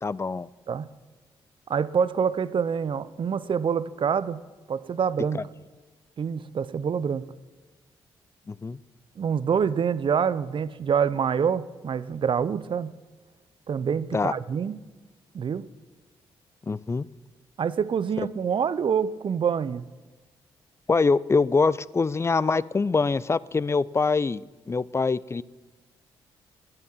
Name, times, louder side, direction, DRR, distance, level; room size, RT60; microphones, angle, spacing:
voice 1, 0.0-0.5 5.3-5.4 8.5-8.8 14.1-14.3 16.7-17.1 18.2-18.3 20.9-25.4, left 4 dB, 25° left, 20 dB, 0.4 m, -24 dB
voice 2, 1.7-4.4 4.7-5.4 6.2-7.3 9.2-12.9 13.7-14.8 15.3-15.7 17.6-19.8, right 7 dB, 50° right, 16 dB, 0.6 m, -26 dB
10.5 x 9.0 x 7.3 m, 1.3 s
supercardioid pair, 50°, 11 cm